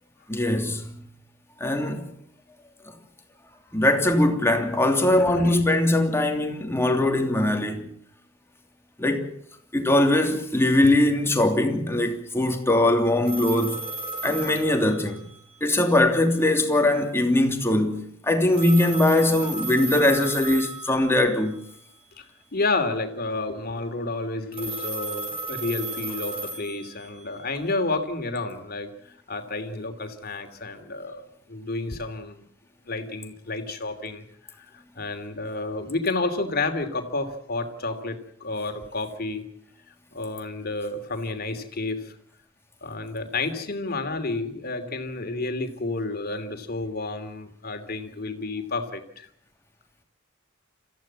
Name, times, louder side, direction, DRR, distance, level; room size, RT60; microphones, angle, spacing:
voice 1, 0.3-0.9 1.6-2.1 2.9-3.0 3.7-7.9 9.0-9.3 9.7-13.9 14.2-15.2 15.6-21.6, left 1 dB, 15° left, 3.0 m, -21 dB
voice 2, 5.2-5.6 22.2-31.2 31.5-32.4 32.8-34.2 34.6-39.4 40.1-42.1 42.8-49.3, left 3 dB, 50° left, 3.0 m, -30 dB
sound 1, 13.3-15.6 18.5-21.4 24.5-27.5, right 2 dB, 30° right, 5.8 m, -34 dB
27.0 x 15.0 x 7.5 m
head